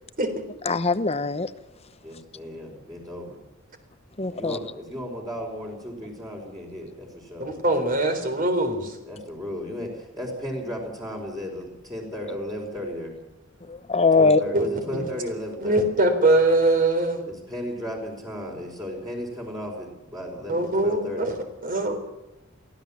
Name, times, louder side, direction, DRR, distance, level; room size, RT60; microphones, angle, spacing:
voice 1, 0.6-1.5 4.2-4.6 13.7-14.4, left 4 dB, 30° left, 13 dB, 0.9 m, -21 dB
voice 2, 2.0-3.4 4.3-7.5 9.1-13.2 14.1-15.9 17.3-21.3, equal, 20° right, -1 dB, 4.9 m, -34 dB
voice 3, 7.4-8.9 14.5-14.6 14.9-15.0 15.6-17.3 20.5-21.3 21.6-22.2, right 2 dB, 40° right, 6 dB, 3.9 m, -22 dB
23.0 x 16.0 x 7.3 m, 1.0 s
head